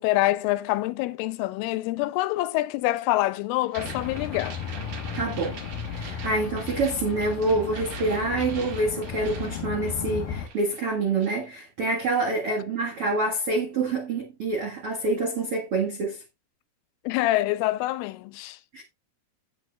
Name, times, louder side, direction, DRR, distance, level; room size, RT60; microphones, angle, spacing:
voice 1, 0.0-4.6 17.1-18.6, left 17 dB, 85° left, 3.2 m, -26 dB
sound 1, 3.7-10.2 10.5-11.5, right 6 dB, 55° right, 2.2 m, -43 dB
sound 2, 3.8-10.5, left 7 dB, 65° left, 2.4 m, -35 dB
voice 2, 5.1-5.6 5.9-16.2 18.7-18.8, right 3 dB, 80° right, 1.2 m, -27 dB
16.0 x 7.4 x 2.4 m
omnidirectional pair, 5.7 m